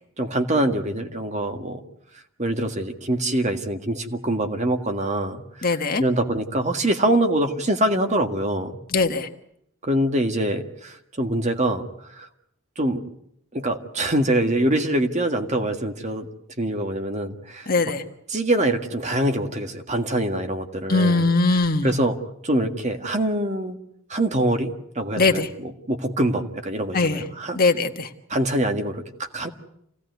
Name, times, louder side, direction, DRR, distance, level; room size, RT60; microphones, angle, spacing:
voice 1, 0.2-1.8 2.4-8.8 9.8-12.3 12.8-13.0 13.5-16.3 16.6-17.7 18.3-21.3 21.5-22.2 22.4-23.8 24.1-27.6 28.3-29.5, right 1 dB, 35° right, 6 dB, 1.8 m, -24 dB
voice 2, 5.6-6.0 8.9-9.3 17.7-18.0 20.9-21.9 25.2-25.5 26.9-27.2 27.5-28.1, left 3 dB, 45° left, 6 dB, 1.6 m, -20 dB
27.5 x 17.0 x 9.4 m, 0.75 s
head